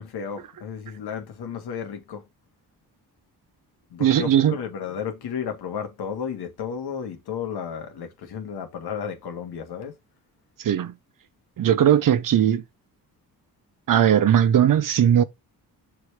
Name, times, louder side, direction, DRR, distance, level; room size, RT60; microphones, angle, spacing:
voice 1, 0.0-2.2 3.9-9.9, left 7 dB, 75° left, 1.9 m, -33 dB
voice 2, 4.0-4.6 10.6-10.9 11.6-12.6 13.9-15.2, right 10 dB, 55° right, 0.8 m, -18 dB
6.7 x 3.5 x 4.7 m
cardioid pair, 80°, 39 cm